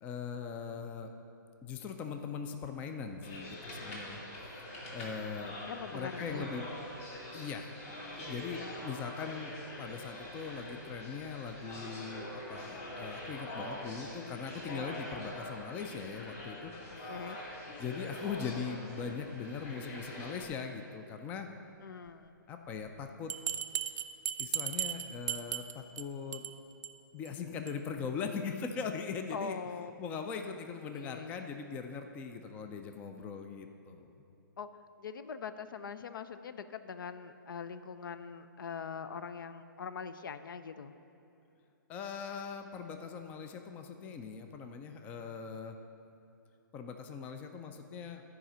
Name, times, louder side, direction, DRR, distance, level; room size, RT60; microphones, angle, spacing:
voice 1, 0.0-1.1 1.6-4.2 4.6-5.5 5.9-6.7 7.3-9.5 9.8-16.7 17.8-21.5 22.5-23.3 24.4-26.4 27.1-29.6 30.0-34.1 41.9-45.8 46.7-48.2, left 6 dB, 15° left, 6 dB, 0.3 m, -40 dB
sound 1, 3.2-20.5, left 1 dB, 40° left, 2.2 m, -44 dB
voice 2, 5.7-6.5 9.0-9.3 17.1-17.4 21.8-22.4 29.3-29.9 30.2-30.3 30.9-31.3 34.6-34.7 35.0-40.9, left 6 dB, 70° left, 11 dB, 0.5 m, -42 dB
Bell, 23.3-26.0 26.3-26.5 26.8-26.9 27.3-27.4 27.7-27.8, right 10 dB, 50° right, 0.4 m, -35 dB
12.0 x 5.0 x 5.6 m, 2.8 s
hypercardioid pair, 150°, 11 cm